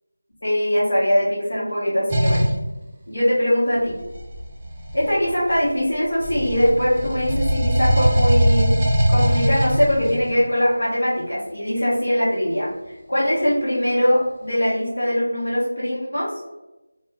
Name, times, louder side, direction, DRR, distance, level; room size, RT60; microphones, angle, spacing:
voice 1, 0.4-2.4 3.1-4.0 4.9-8.8 9.1-12.7 13.1-16.3, equal, 60° left, -7 dB, 1.1 m, -21 dB
sound 1, 2.1-2.6 3.9-5.8 6.2-10.3, right 1 dB, 15° right, 0.4 m, -21 dB
2.4 x 2.2 x 3.2 m, 1.0 s
figure-of-eight pair, 175°, 0 cm